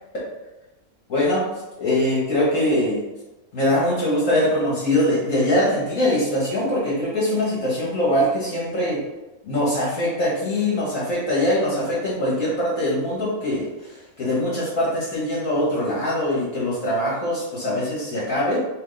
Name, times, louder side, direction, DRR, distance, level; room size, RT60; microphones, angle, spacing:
voice 1, 1.1-1.4 1.8-3.0 3.5-9.0 9.4-18.6, left 1 dB, 60° left, -7 dB, 1.6 m, -22 dB
4.6 x 2.8 x 3.9 m, 1.0 s
omnidirectional pair, 1.5 m